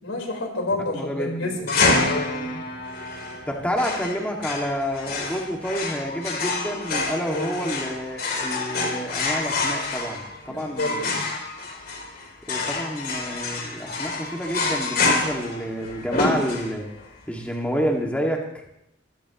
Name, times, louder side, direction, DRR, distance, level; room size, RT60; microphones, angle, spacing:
voice 1, 0.0-2.6 7.3-7.6 10.5-11.3, left 2 dB, 90° left, 2 dB, 4.3 m, -29 dB
voice 2, 0.9-1.5 3.5-11.1 12.5-16.9 17.3-18.4, equal, 5° left, 0 dB, 2.1 m, -29 dB
sound 1, 1.7-17.0, left 3 dB, 50° left, 3.2 m, -27 dB
23.5 x 16.5 x 3.0 m, 0.79 s
head